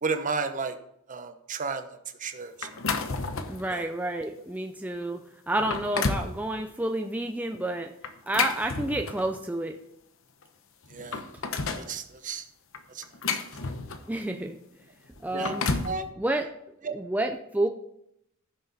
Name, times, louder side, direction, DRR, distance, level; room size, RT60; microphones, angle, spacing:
voice 1, 0.0-0.8 1.1-2.7 3.7-3.9 10.9-11.2 11.6-12.4 12.9-13.0 15.3-15.6 15.8-16.1 16.8-17.0, right 4 dB, 35° right, 8 dB, 0.9 m, -33 dB
sound 1, 2.6-3.7 4.2-4.4 5.0-5.1 5.5-6.3 8.0-9.4 10.4-10.5 10.8-11.9 12.7-14.2 15.2-16.0, left 4 dB, 65° left, 0.9 m, -31 dB
voice 2, 3.5-5.2 5.5-7.9 8.3-9.8 14.1-14.6 15.2-15.7 16.2-16.5 16.9-17.7, right 1 dB, 5° right, 4 dB, 0.5 m, -29 dB
15.0 x 6.4 x 4.1 m, 0.77 s
head